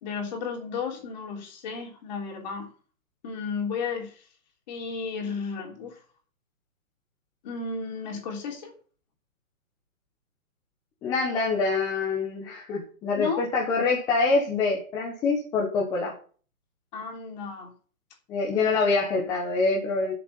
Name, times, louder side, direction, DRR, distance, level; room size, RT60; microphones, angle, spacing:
voice 1, 0.0-2.7 3.2-4.2 4.7-6.0 7.4-8.7 13.1-13.4 16.9-17.7, left 5 dB, 30° left, 3.2 m, -33 dB
voice 2, 11.0-16.1 18.3-20.1, left 4 dB, 10° left, 1.1 m, -25 dB
10.5 x 6.9 x 9.2 m
hypercardioid pair, 165°, 41 cm